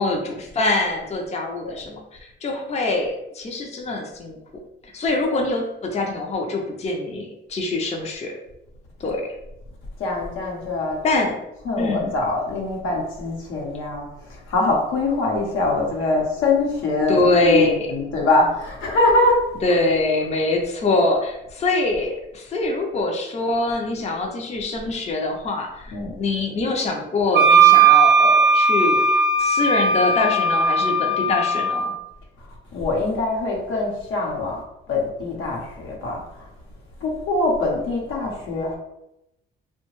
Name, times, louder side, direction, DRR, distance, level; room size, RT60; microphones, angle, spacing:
voice 1, 0.0-4.4 4.8-8.3 9.0-9.2 11.0-11.4 11.8-12.1 17.1-17.9 19.6-25.9 26.1-29.1 29.4-31.9, left 2 dB, 35° left, 1 dB, 0.5 m, -24 dB
voice 2, 10.0-11.0 11.6-19.4 25.9-26.1 32.4-32.5 32.7-34.6 34.9-36.5 37.0-38.8, left 2 dB, 85° left, -2 dB, 0.8 m, -23 dB
Wind instrument woodwind instrument, 27.3-31.8, right 4 dB, 60° right, 0.5 m, -17 dB
2.8 x 2.2 x 3.0 m, 0.88 s
cardioid pair, 90°, 20 cm